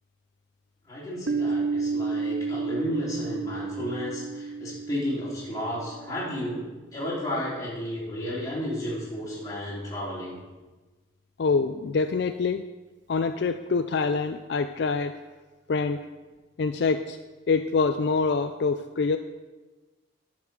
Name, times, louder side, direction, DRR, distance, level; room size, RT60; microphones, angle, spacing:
voice 1, 0.9-6.6 6.9-10.4, equal, 20° left, -7 dB, 3.6 m, -32 dB
Piano, 1.3-6.6, right 4 dB, 65° right, 0.4 m, -31 dB
voice 2, 11.4-12.6 13.1-15.2 15.7-16.0 16.6-17.2 17.5-19.2, left 4 dB, 60° left, 8 dB, 0.4 m, -25 dB
10.5 x 6.0 x 6.2 m, 1.2 s
head